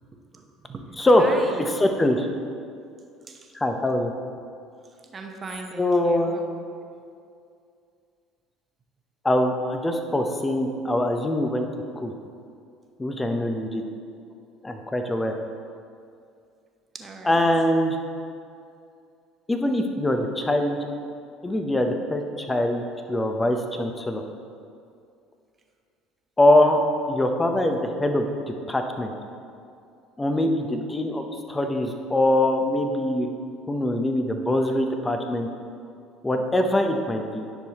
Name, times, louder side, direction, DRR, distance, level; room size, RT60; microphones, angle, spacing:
voice 1, 0.3-0.9 1.2-1.6 3.3-3.5 5.1-6.4 16.9-17.4, right 4 dB, 35° right, 3 dB, 1.0 m, -38 dB
voice 2, 1.0-2.3 3.5-4.1 5.8-6.3 9.2-11.7 12.0-12.1 13.0-13.8 14.6-15.3 17.2-18.0 19.5-20.8 21.4-22.8 23.1-24.2 26.4-26.8 27.1-29.1 30.2-33.3 33.7-35.5 36.2-37.5, left 1 dB, 15° left, 5 dB, 0.8 m, -23 dB
10.0 x 6.3 x 3.0 m, 2.4 s
hypercardioid pair, 65°, 0 cm